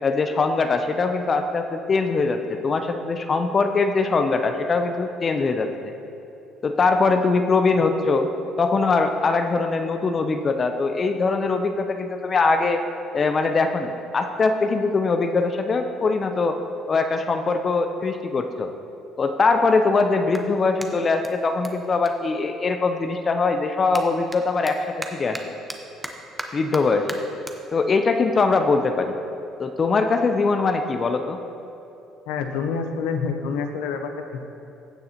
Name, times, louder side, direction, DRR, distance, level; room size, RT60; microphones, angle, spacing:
voice 1, 0.0-5.9 6.6-8.3 8.6-12.8 13.1-16.6 16.9-18.7 19.2-24.8 25.1-25.5 26.5-27.2 27.7-29.2 29.6-31.4, left 4 dB, 40° left, 6 dB, 0.6 m, -22 dB
Clapping, 20.3-23.0 23.3-30.0, right 1 dB, 10° right, 0.9 m, -40 dB
voice 2, 32.3-34.4, left 5 dB, 90° left, 6 dB, 0.7 m, -27 dB
15.0 x 6.7 x 2.9 m, 2.7 s
supercardioid pair, 85°, 0 cm